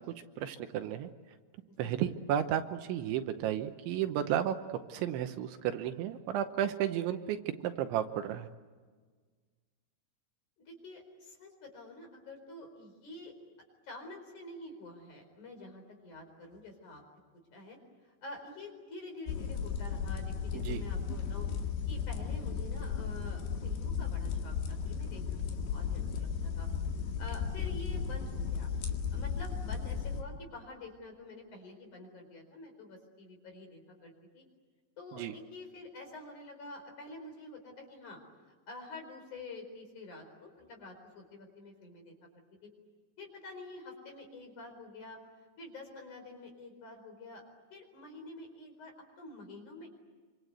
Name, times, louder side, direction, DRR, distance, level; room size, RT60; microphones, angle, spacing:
voice 1, 0.4-1.1 1.8-4.5 4.9-7.4 7.6-8.4 20.7-20.8 35.2-35.3, right 10 dB, 75° right, 8 dB, 3.2 m, -32 dB
voice 2, 10.6-13.4 13.8-17.0 17.5-17.8 18.2-21.5 21.9-26.7 27.2-28.7 29.1-34.5 35.0-38.2 38.5-42.7 43.2-45.2 45.6-47.4 47.7-49.9, left 2 dB, 40° left, 3 dB, 5.5 m, -48 dB
sound 1, 19.3-30.2, left 6 dB, 65° left, 3.9 m, -35 dB
26.5 x 25.5 x 8.1 m, 1.5 s
omnidirectional pair, 5.5 m